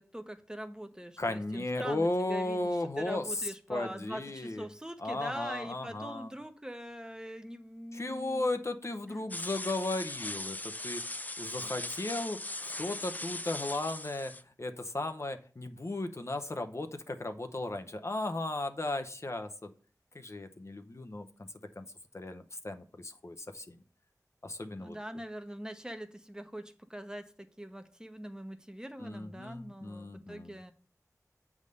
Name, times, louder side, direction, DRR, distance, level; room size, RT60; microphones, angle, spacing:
voice 1, 0.0-8.5 9.1-9.2 24.8-30.7, equal, 10° right, 0.8 m, -43 dB
voice 2, 1.2-4.7 5.0-6.3 7.9-11.0 11.4-14.3 14.6-19.7 20.1-21.5 21.8-21.9 22.1-23.8 24.4-25.0 29.0-30.6, left 2 dB, 50° left, 0.8 m, -35 dB
sound 1, 9.3-14.4, left 2 dB, 25° left, 0.4 m, -39 dB
8.1 x 3.6 x 6.5 m
wide cardioid pair, 50°, 6 cm